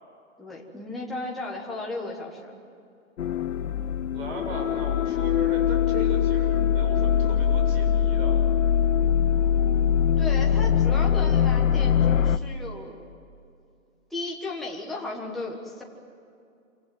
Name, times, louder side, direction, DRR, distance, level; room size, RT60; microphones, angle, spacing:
voice 1, 0.4-2.6 10.2-13.1 14.1-15.8, left 2 dB, ahead, -4 dB, 1.4 m, -35 dB
sound 1, 3.2-12.4, left 8 dB, 70° left, 1.0 m, -22 dB
voice 2, 4.1-8.4, right 3 dB, 45° right, 2 dB, 7.4 m, -38 dB
27.0 x 26.0 x 7.8 m, 2.5 s
hypercardioid pair, 175°, 40 cm